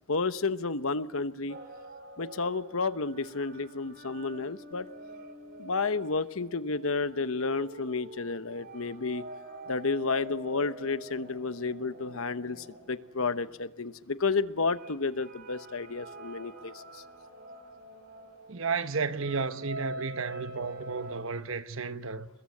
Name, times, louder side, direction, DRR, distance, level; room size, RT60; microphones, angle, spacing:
voice 1, 0.1-1.6 2.2-4.9 5.6-9.2 9.7-17.0, left 4 dB, 65° left, 1.0 m, -31 dB
sound 1, 1.5-14.0 14.7-21.2, right 1 dB, 45° right, 3.5 m, -46 dB
voice 2, 18.5-22.3, right 4 dB, 60° right, 1.1 m, -33 dB
29.0 x 21.5 x 7.9 m
head